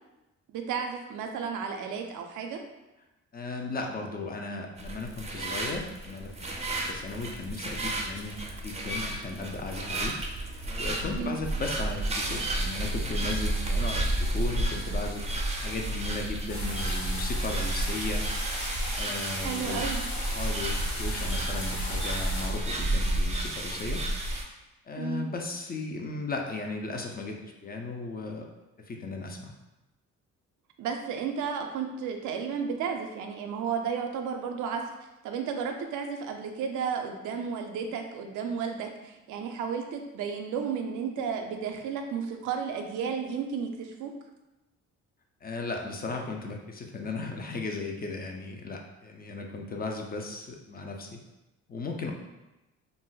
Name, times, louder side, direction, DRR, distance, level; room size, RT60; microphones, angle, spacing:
voice 1, 0.5-2.6 11.1-11.4 19.4-20.0 25.0-25.3 30.8-34.8 35.2-44.1, right 6 dB, 80° right, 4 dB, 0.5 m, -33 dB
voice 2, 3.3-10.1 10.5-15.3 15.6-18.2 18.5-19.8 20.3-24.0 24.9-28.5 28.9-29.5 45.4-51.2 51.7-52.1, left 3 dB, 30° left, 2 dB, 0.4 m, -36 dB
sound 1, 4.8-24.4, right 1 dB, 20° right, 0.5 m, -31 dB
sound 2, 16.5-22.5, left 1 dB, 60° left, 1.1 m, -38 dB
2.5 x 2.0 x 3.8 m, 0.99 s
cardioid pair, 90°, 30 cm